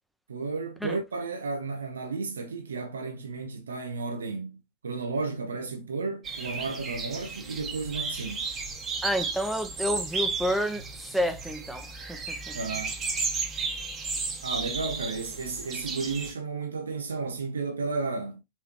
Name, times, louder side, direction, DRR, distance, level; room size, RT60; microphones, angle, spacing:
voice 1, 0.3-4.6 4.8-8.4 12.5-13.0 14.4-18.4, right 4 dB, 75° right, 0.9 m, -33 dB
sound 1, 6.2-16.3, right 4 dB, 30° right, 1.2 m, -34 dB
voice 2, 9.0-12.6, equal, ahead, 0.9 m, -30 dB
4.2 x 3.3 x 3.0 m
figure-of-eight pair, 85°, 0 cm